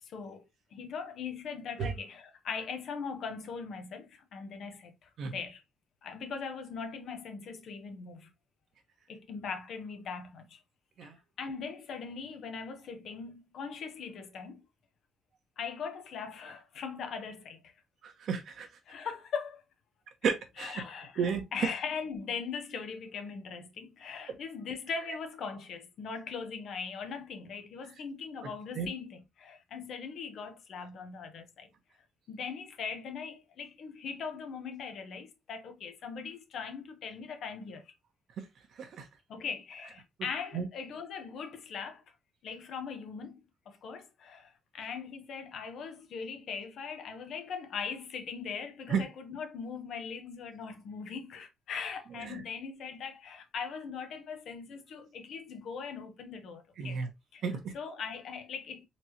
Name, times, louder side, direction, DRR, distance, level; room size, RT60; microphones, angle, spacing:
voice 1, 0.0-5.6 6.0-8.3 9.1-10.6 11.0-11.1 11.4-14.6 15.6-17.7 18.9-19.6 20.6-31.7 32.3-37.9 39.3-42.0 42.4-57.0 57.3-57.4 57.7-58.9, left 5 dB, 70° left, 0.9 m, -40 dB
voice 2, 18.0-18.7 20.2-20.8 21.2-21.7 25.1-25.2 28.4-28.5 28.7-28.9 38.8-39.1 40.5-40.7 48.9-49.0 52.2-52.4 56.8-57.1 57.4-57.7, right 6 dB, 65° right, 1.1 m, -32 dB
4.2 x 3.1 x 2.9 m
cardioid pair, 90°, 0 cm